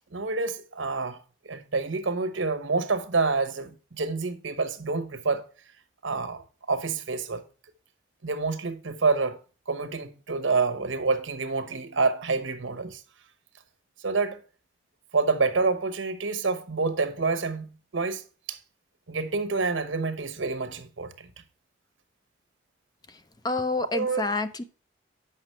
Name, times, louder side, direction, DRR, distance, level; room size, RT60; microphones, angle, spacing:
voice 1, 0.1-1.2 1.4-5.4 6.0-7.4 8.2-9.4 9.7-13.0 14.0-14.4 15.1-18.2 18.5-18.6 19.1-21.3 23.9-24.2, right 4 dB, 85° right, 1.0 m, -27 dB
voice 2, 23.4-24.6, left 3 dB, 20° left, 0.5 m, -28 dB
7.8 x 5.9 x 4.3 m
head